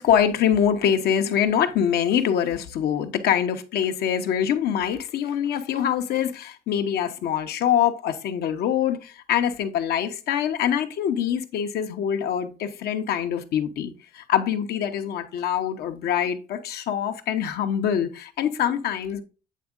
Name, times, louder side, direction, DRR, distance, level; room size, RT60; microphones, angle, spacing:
voice 1, 0.0-19.2, left 9 dB, 70° left, 0.8 m, -24 dB
8.4 x 3.5 x 3.8 m
cardioid pair, 110°, 17 cm